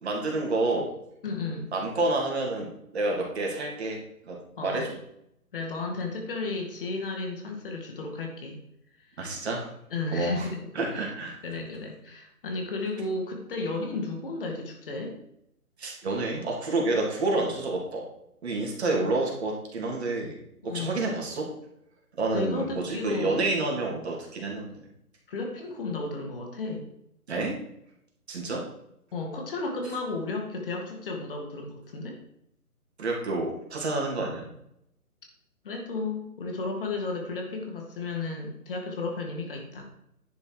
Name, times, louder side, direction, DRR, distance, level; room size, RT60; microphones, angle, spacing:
voice 1, 0.0-0.9 1.7-4.0 4.3-5.0 9.2-9.7 10.1-10.5 10.7-11.4 15.8-18.0 18.4-20.4 20.6-21.5 22.2-24.7 27.3-27.5 28.3-28.6 33.0-34.5, right 2 dB, 45° right, -1 dB, 3.0 m, -29 dB
voice 2, 1.2-1.7 4.6-4.9 5.5-8.6 9.0-9.2 9.9-11.0 11.4-15.2 18.9-19.1 20.6-21.0 22.3-23.4 25.3-26.9 29.1-32.2 35.6-39.8, left 3 dB, 35° left, 2 dB, 2.1 m, -33 dB
10.5 x 6.8 x 4.9 m, 0.77 s
figure-of-eight pair, 155°, 45 cm